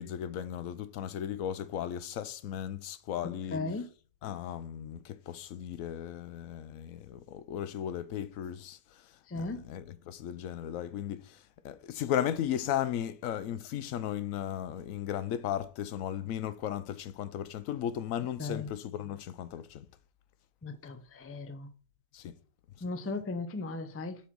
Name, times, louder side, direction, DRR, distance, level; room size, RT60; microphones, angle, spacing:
voice 1, 0.0-3.9 4.2-19.9 22.1-22.3, left 10 dB, 90° left, 1.0 m, -36 dB
voice 2, 3.5-3.9 9.3-9.6 18.4-18.6 20.6-21.7 22.8-24.2, left 3 dB, 20° left, 0.3 m, -36 dB
5.9 x 4.3 x 6.0 m
omnidirectional pair, 1.4 m